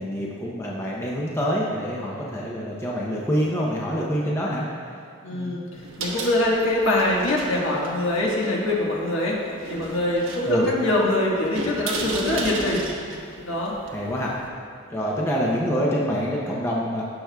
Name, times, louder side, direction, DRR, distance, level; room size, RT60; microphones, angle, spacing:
voice 1, 0.0-4.6 5.3-5.6 10.5-10.7 13.9-14.3 14.9-17.0, equal, 10° left, -4 dB, 0.7 m, -26 dB
voice 2, 5.2-9.4 9.7-12.8 13.4-13.7, left 1 dB, 65° left, -4 dB, 1.5 m, -23 dB
sound 1, 5.7-14.5, right 2 dB, 65° right, 1.1 m, -35 dB
16.5 x 6.0 x 2.3 m, 2.3 s
head